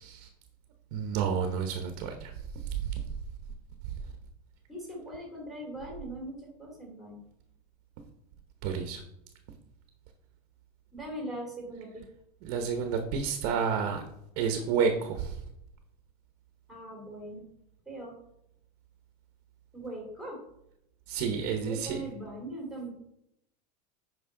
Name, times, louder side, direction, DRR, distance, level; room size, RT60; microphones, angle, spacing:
voice 1, 0.9-2.3 2.7-3.0 8.6-9.0 12.4-14.0 14.4-15.4 21.1-22.0, right 6 dB, 50° right, 6 dB, 1.0 m, -30 dB
voice 2, 4.7-7.2 10.9-12.1 16.7-17.4 17.9-18.1 19.7-20.4 21.4-22.9, right 1 dB, ahead, -1 dB, 2.6 m, -40 dB
9.4 x 5.4 x 3.8 m, 0.79 s
supercardioid pair, 165°, 21 cm